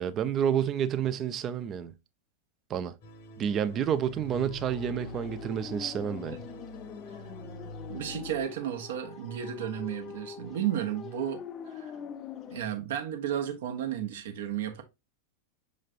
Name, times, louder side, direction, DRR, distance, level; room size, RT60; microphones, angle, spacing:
voice 1, 0.0-1.9 2.7-2.9 3.4-6.4, right 9 dB, 30° right, 0.5 m, -29 dB
sound 1, 3.0-8.4, left 1 dB, 50° left, 0.9 m, -45 dB
sound 2, 4.6-12.6, left 8 dB, 30° left, 0.5 m, -44 dB
voice 2, 7.9-11.4 11.7-11.9 12.5-14.8, right 10 dB, 60° right, 1.0 m, -33 dB
6.5 x 3.2 x 2.4 m
figure-of-eight pair, 90°, 0 cm